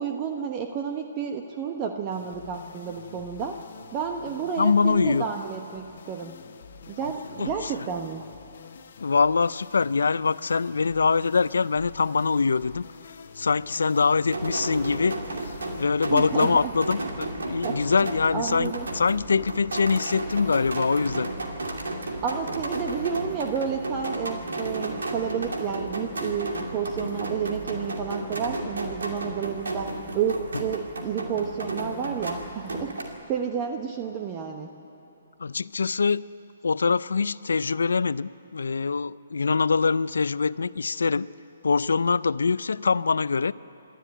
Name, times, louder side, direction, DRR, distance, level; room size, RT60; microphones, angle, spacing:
voice 1, 0.0-3.6 3.9-6.3 6.9-8.3 16.1-16.7 17.5-17.9 18.3-18.9 22.2-34.7, right 7 dB, 30° right, 4 dB, 1.0 m, -31 dB
sound 1, 2.1-17.5, left 6 dB, 60° left, 1.2 m, -48 dB
voice 2, 4.6-5.3 7.4-7.7 9.0-12.8 13.4-15.2 15.8-21.3 35.4-36.2 36.6-41.3 41.6-43.5, left 4 dB, 80° left, 18 dB, 0.4 m, -24 dB
sound 2, 14.2-33.1, right 2 dB, 90° right, 2.5 m, -33 dB
26.5 x 12.0 x 9.1 m, 2.9 s
hypercardioid pair, 145°, 0 cm